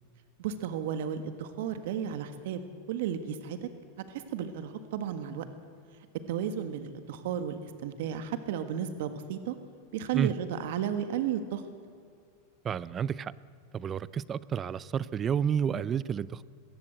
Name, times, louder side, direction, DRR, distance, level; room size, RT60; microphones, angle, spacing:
voice 1, 0.4-2.6 2.9-3.7 4.1-5.5 6.3-9.5 9.9-11.6, right 9 dB, 70° right, 10 dB, 1.6 m, -33 dB
voice 2, 12.6-13.3 13.7-16.4, right 8 dB, 25° right, 20 dB, 0.6 m, -30 dB
22.0 x 16.5 x 8.1 m, 2.4 s
supercardioid pair, 145°, 0 cm